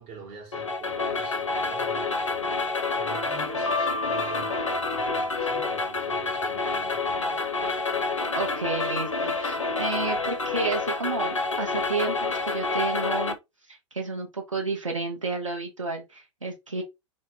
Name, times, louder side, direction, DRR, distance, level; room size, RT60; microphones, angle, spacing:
voice 1, 0.0-7.5, right 4 dB, 40° right, 0.9 m, -45 dB
sound 1, 0.5-13.4, left 3 dB, 85° left, 0.4 m, -28 dB
Piano, 3.7-5.8, left 3 dB, 10° left, 0.5 m, -34 dB
voice 2, 8.3-13.4 13.7-16.8, right 3 dB, 85° right, 0.6 m, -31 dB
2.1 x 2.1 x 3.2 m
figure-of-eight pair, 90°, 16 cm